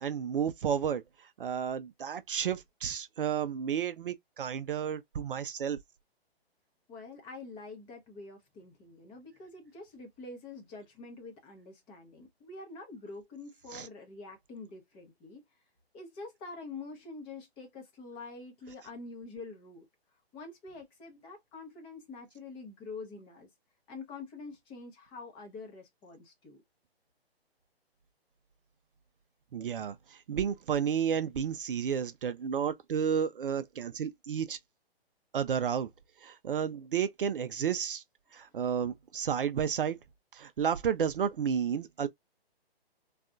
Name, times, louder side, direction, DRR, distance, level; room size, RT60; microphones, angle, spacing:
voice 1, 0.0-1.0 1.4-5.8 13.7-13.9 29.5-34.6 35.3-35.9 36.2-38.0 38.3-40.0 40.3-42.1, right 8 dB, 60° right, 0.5 m, -32 dB
voice 2, 6.9-15.4 15.9-19.9 20.3-23.5 23.9-26.6, left 3 dB, 15° left, 0.7 m, -46 dB
3.4 x 2.4 x 2.3 m
figure-of-eight pair, 135°, 32 cm